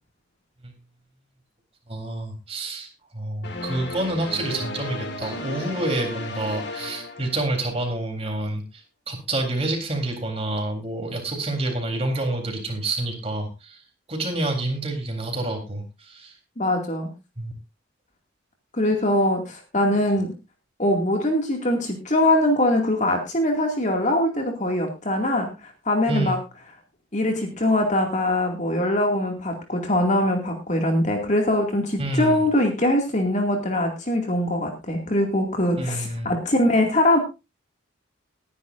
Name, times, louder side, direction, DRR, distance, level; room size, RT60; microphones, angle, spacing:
voice 1, 1.9-2.9 3.1-13.8 14.1-16.3 17.4-17.5 26.1-26.4 32.0-32.4 35.8-36.3, right 2 dB, 30° right, 3 dB, 3.8 m, -28 dB
sound 1, 3.4-7.9, left 2 dB, 55° left, 2.1 m, -34 dB
voice 2, 16.6-17.1 18.7-20.3 20.8-26.4 27.1-37.2, left 1 dB, 35° left, 2 dB, 2.4 m, -22 dB
20.0 x 10.5 x 2.6 m, 0.27 s
head